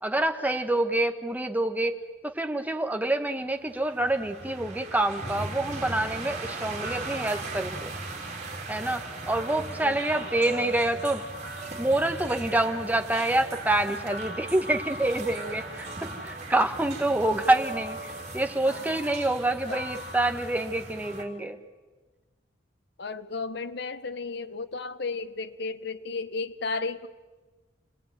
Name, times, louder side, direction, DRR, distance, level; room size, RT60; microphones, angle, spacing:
voice 1, 0.0-1.9 2.2-7.9 8.7-11.2 11.5-21.6, right 1 dB, 10° right, 5 dB, 1.5 m, -27 dB
sound 1, 3.6-21.2, right 2 dB, 40° right, 3.9 m, -38 dB
voice 2, 9.8-10.7 18.6-19.0 19.7-19.8 23.0-27.1, left 4 dB, 65° left, 12 dB, 1.1 m, -34 dB
29.0 x 20.0 x 9.2 m, 1.3 s
head